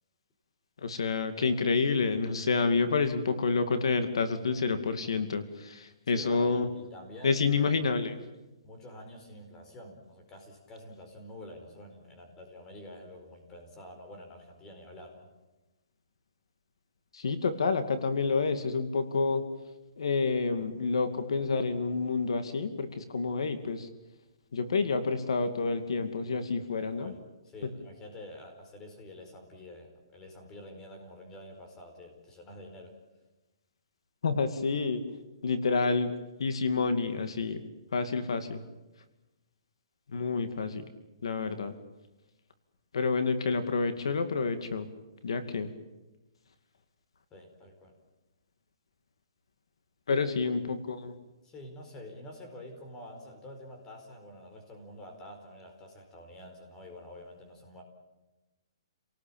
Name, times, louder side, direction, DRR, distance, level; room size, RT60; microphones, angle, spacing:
voice 1, 0.8-6.7 7.2-8.1 17.1-19.4 20.0-23.9 24.5-27.1 34.2-35.0 35.4-36.1 36.4-37.6 37.9-38.7 40.1-40.9 41.2-41.7 42.9-44.9 45.2-45.7 50.1-51.1, left 4 dB, 80° left, 9 dB, 2.4 m, -28 dB
voice 2, 6.1-7.7 8.6-15.3 26.8-27.2 27.4-32.9 47.3-47.9 50.1-50.6 51.4-57.8, left 1 dB, 15° left, 4 dB, 4.6 m, -48 dB
29.0 x 18.5 x 8.9 m, 1.1 s
hypercardioid pair, 170°, 3 cm